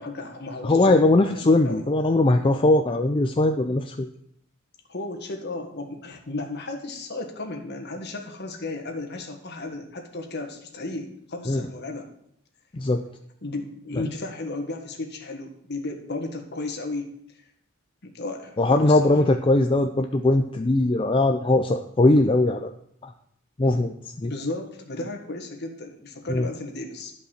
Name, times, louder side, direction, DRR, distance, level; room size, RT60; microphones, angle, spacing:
voice 1, 0.0-1.9 4.9-12.1 13.4-17.1 18.0-19.0 24.2-27.1, left 2 dB, 55° left, 4 dB, 1.6 m, -34 dB
voice 2, 0.6-4.1 11.5-11.6 12.7-13.0 13.9-14.0 18.6-22.7 23.0-23.1 23.6-23.9 24.2-24.3 26.3-26.5, left 2 dB, 25° left, 5 dB, 0.4 m, -20 dB
11.5 x 5.4 x 6.5 m, 0.70 s
head